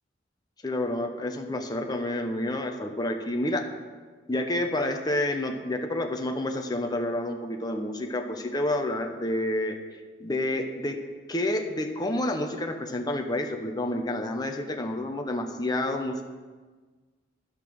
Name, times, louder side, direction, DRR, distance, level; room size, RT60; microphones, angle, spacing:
voice 1, 0.6-3.7 4.3-9.8 10.2-11.0 11.3-16.2, left 1 dB, 25° left, 4 dB, 0.7 m, -29 dB
10.5 x 5.6 x 6.2 m, 1.4 s
head